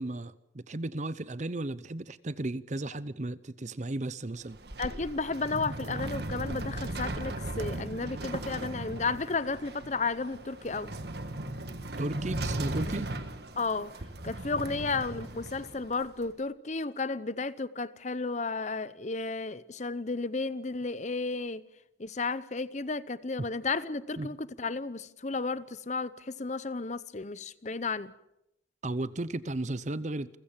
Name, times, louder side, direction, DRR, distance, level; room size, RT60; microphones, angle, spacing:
voice 1, 0.0-4.6 12.0-13.1 24.2-24.4 28.8-30.4, right 2 dB, 40° right, 0.7 m, -34 dB
sound 1, 4.4-16.3, right 1 dB, 55° right, 1.7 m, -37 dB
voice 2, 4.8-10.9 13.6-13.9 14.2-21.6 22.0-28.1, left 3 dB, 40° left, 0.7 m, -33 dB
29.0 x 15.5 x 7.4 m
head